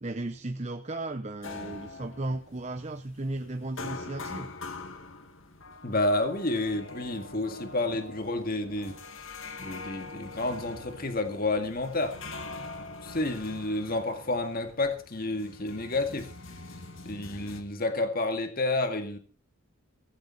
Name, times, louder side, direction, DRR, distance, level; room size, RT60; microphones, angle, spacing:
voice 1, 0.0-4.5, right 2 dB, 30° right, 8 dB, 0.8 m, -35 dB
sound 1, 1.4-17.6, left 3 dB, 65° left, 2.0 m, -43 dB
voice 2, 5.8-9.0 9.6-12.2 13.0-16.3 17.0-19.2, left 2 dB, 40° left, 7 dB, 2.0 m, -30 dB
17.0 x 15.0 x 4.1 m, 0.36 s
head